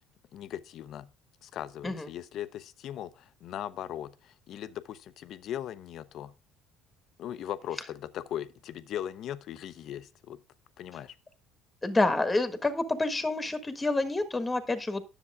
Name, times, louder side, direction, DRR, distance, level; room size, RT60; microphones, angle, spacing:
voice 1, 0.3-1.1 1.4-6.3 7.2-10.4 10.8-11.1, left 11 dB, 60° left, 0.7 m, -39 dB
voice 2, 11.8-15.0, left 2 dB, 15° left, 1.4 m, -28 dB
10.0 x 7.1 x 3.5 m
supercardioid pair, 90°, 0 cm